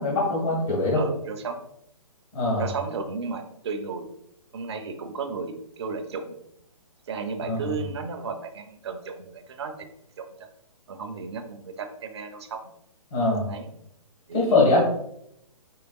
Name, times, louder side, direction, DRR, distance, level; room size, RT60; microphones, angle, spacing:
voice 1, 0.0-1.0 2.3-2.7 7.4-7.6 13.1-13.4 14.3-14.8, left 2 dB, 55° left, -4 dB, 1.3 m, -22 dB
voice 2, 0.9-1.6 2.6-4.1 4.5-6.3 7.1-9.8 10.2-10.3 10.9-12.6 13.5-13.7 14.3-14.8, right 5 dB, 45° right, 6 dB, 0.5 m, -34 dB
4.6 x 3.2 x 2.3 m, 0.75 s
hypercardioid pair, 165°, 19 cm